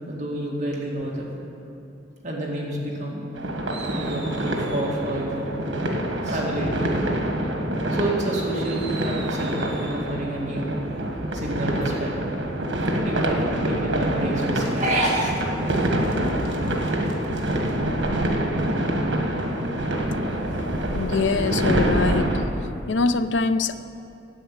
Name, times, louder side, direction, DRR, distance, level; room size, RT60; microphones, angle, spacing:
voice 1, 0.1-1.3 2.2-3.3 3.8-5.5 5.7-5.9 6.2-6.9 7.9-10.8 11.3-12.1 13.0-15.3, right 1 dB, 40° right, -3 dB, 2.1 m, -28 dB
sound 1, 3.4-22.5, right 1 dB, 85° right, 1.4 m, -26 dB
voice 2, 20.7-22.5 22.9-23.8, left 4 dB, 75° left, 12 dB, 0.5 m, -24 dB
10.0 x 8.1 x 8.8 m, 2.8 s
head